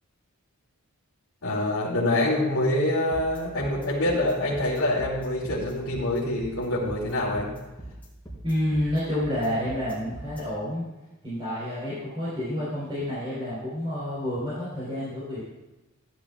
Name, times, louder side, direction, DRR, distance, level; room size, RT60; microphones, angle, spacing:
voice 1, 1.4-7.5, left 1 dB, 80° left, -9 dB, 2.7 m, -25 dB
sound 1, 3.1-10.4, right 1 dB, 10° left, 4.3 m, -41 dB
voice 2, 8.4-10.8 11.2-15.4, left 1 dB, 25° right, -9 dB, 4.1 m, -29 dB
16.0 x 11.5 x 2.4 m, 1.1 s
head